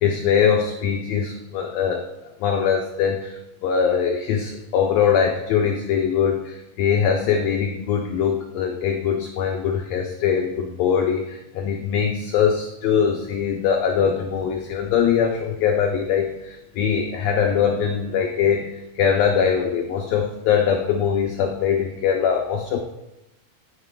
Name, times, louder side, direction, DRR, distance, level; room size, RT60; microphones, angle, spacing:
voice 1, 0.0-2.0 2.4-22.8, left 7 dB, 85° left, 3 dB, 1.5 m, -22 dB
9.9 x 5.1 x 2.2 m, 0.93 s
omnidirectional pair, 3.6 m